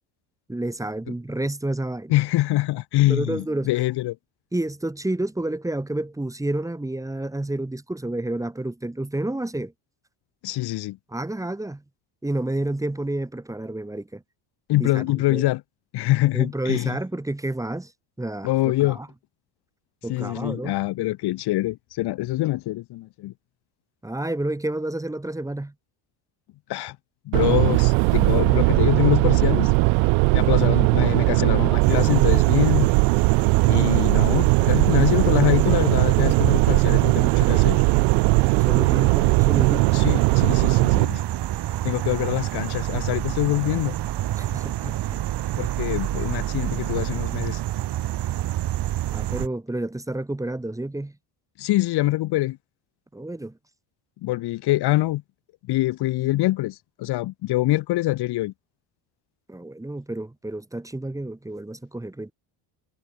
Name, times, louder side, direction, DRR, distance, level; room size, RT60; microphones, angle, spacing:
voice 1, 0.5-2.1 3.1-3.7 4.5-9.7 11.1-11.8 12.2-14.2 14.8-15.4 16.3-17.9 18.2-19.1 20.0-20.8 24.0-25.7 38.7-40.0 44.4-45.3 49.1-51.1 53.1-53.6 59.5-62.3, right 1 dB, 5° right, 1.4 m, -30 dB
voice 2, 2.1-4.2 10.4-11.0 14.7-15.6 15.9-17.0 18.4-19.0 20.1-23.3 26.7-27.0 27.3-29.7 30.3-32.9 33.7-37.8 39.9-41.2 41.8-43.9 45.6-47.6 51.6-52.6 54.2-55.2 55.7-58.5, left 17 dB, 55° left, 0.8 m, -24 dB
sound 1, 27.3-41.1, right 34 dB, 85° right, 0.7 m, -19 dB
sound 2, 31.8-49.5, right 14 dB, 55° right, 2.9 m, -28 dB
cardioid pair, 110°, 47 cm